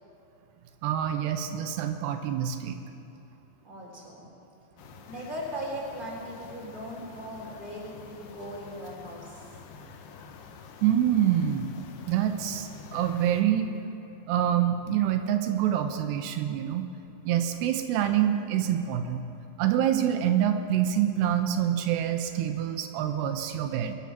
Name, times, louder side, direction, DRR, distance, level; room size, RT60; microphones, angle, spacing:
voice 1, 0.8-2.8 10.8-11.7 12.1-13.7 14.3-16.8 17.3-19.2 19.6-24.0, right 10 dB, 85° right, 7 dB, 2.9 m, -26 dB
voice 2, 3.6-4.3 5.1-9.5, equal, 15° right, -3 dB, 3.0 m, -38 dB
sound 1, 4.8-13.4, left 5 dB, 75° left, 2.9 m, -48 dB
22.5 x 9.7 x 5.9 m, 2.9 s
omnidirectional pair, 4.7 m